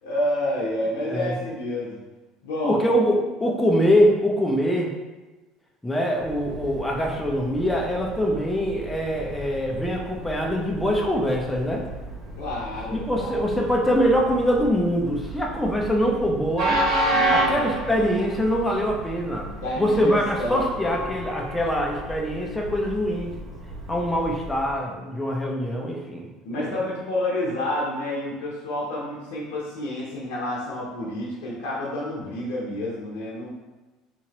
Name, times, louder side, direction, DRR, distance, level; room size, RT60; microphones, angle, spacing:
voice 1, 0.0-1.9 2.4-2.8 12.4-13.4 17.1-17.7 19.5-20.7 26.4-33.5, left 1 dB, 80° left, -5 dB, 0.8 m, -29 dB
voice 2, 2.6-4.9 5.8-11.9 12.9-16.8 17.3-23.3 23.9-26.3 26.6-26.8, equal, 10° left, -1 dB, 0.6 m, -23 dB
Train, 6.2-24.7, right 1 dB, 60° right, 0.9 m, -32 dB
3.7 x 2.9 x 2.9 m, 1.2 s
hypercardioid pair, 80°, 0 cm